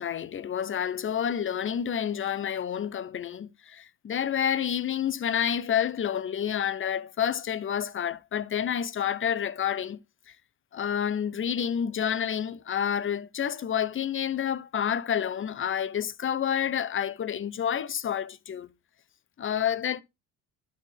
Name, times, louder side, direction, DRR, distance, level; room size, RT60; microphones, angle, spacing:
voice 1, 0.0-10.0 10.3-10.4 10.7-18.7 19.4-20.0, left 9 dB, 30° left, 0.6 m, -29 dB
11.5 x 4.6 x 3.4 m
cardioid pair, 95°, 43 cm